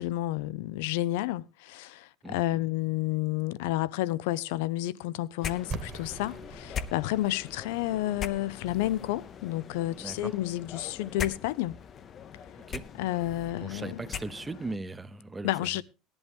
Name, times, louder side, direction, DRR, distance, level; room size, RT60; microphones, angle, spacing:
voice 1, 0.0-11.8 13.0-14.0 15.4-15.8, left 15 dB, 85° left, 0.6 m, -30 dB
sound 1, 5.4-14.8, left 8 dB, 30° left, 0.6 m, -41 dB
sound 2, 5.7-11.4, right 4 dB, 25° right, 1.3 m, -45 dB
voice 2, 10.0-10.3 12.7-12.8 13.6-15.8, right 2 dB, 10° right, 0.7 m, -38 dB
17.0 x 11.0 x 3.5 m
cardioid pair, 150°, 0 cm